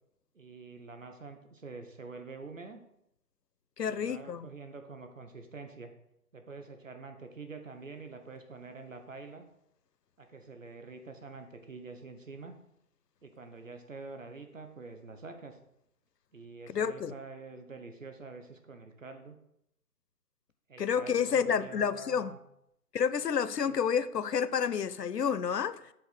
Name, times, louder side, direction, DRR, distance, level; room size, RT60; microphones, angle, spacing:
voice 1, 0.3-2.8 3.8-5.9 6.3-9.5 10.2-12.5 13.2-15.6 16.3-19.4 20.7-22.4 23.6-23.8, right 4 dB, 55° right, 6 dB, 0.9 m, -46 dB
voice 2, 3.8-4.5 16.7-17.1 20.8-22.3 22.9-25.8, left 7 dB, 85° left, 15 dB, 0.7 m, -29 dB
8.0 x 3.6 x 6.3 m, 0.78 s
figure-of-eight pair, 165°, 47 cm